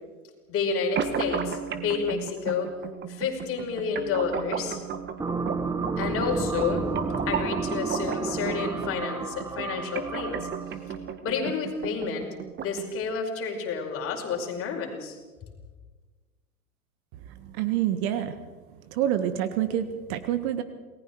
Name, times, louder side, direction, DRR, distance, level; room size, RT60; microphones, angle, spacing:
voice 1, 0.5-2.7 3.1-4.8 6.0-6.9 7.3-10.5 11.2-12.3 12.6-15.2, left 5 dB, 30° left, 1 dB, 5.4 m, -30 dB
sound 1, 1.0-13.0, right 7 dB, 25° right, 1.6 m, -34 dB
sound 2, 5.2-10.8, right 4 dB, 5° right, 1.1 m, -31 dB
voice 2, 17.4-18.4 18.9-20.6, right 11 dB, 45° right, 10 dB, 1.6 m, -27 dB
28.0 x 19.5 x 4.7 m, 1.3 s
hypercardioid pair, 105°, 43 cm